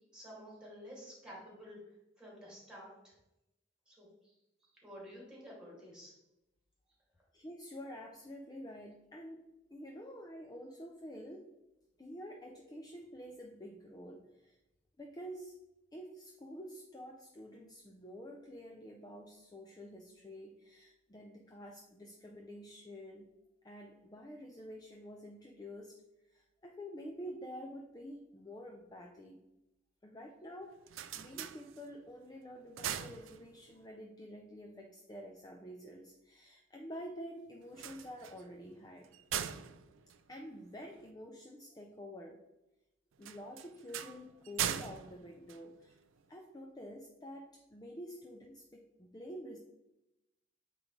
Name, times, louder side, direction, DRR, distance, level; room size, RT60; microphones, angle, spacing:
voice 1, 0.1-1.8 2.2-3.1 3.9-4.3 4.8-6.1, equal, 5° right, -4 dB, 2.4 m, -51 dB
voice 2, 7.3-9.5 9.7-11.5 12.0-14.6 15.0-15.6 15.9-23.3 23.6-26.0 26.3-29.4 30.0-39.1 40.3-42.4 43.2-46.0 46.3-49.6, equal, 20° left, 1 dB, 0.5 m, -48 dB
sound 1, 30.6-32.2 32.5-33.9 37.6-41.1 43.2-46.2, right 10 dB, 85° right, 0.4 m, -41 dB
8.6 x 3.8 x 3.2 m, 0.92 s
head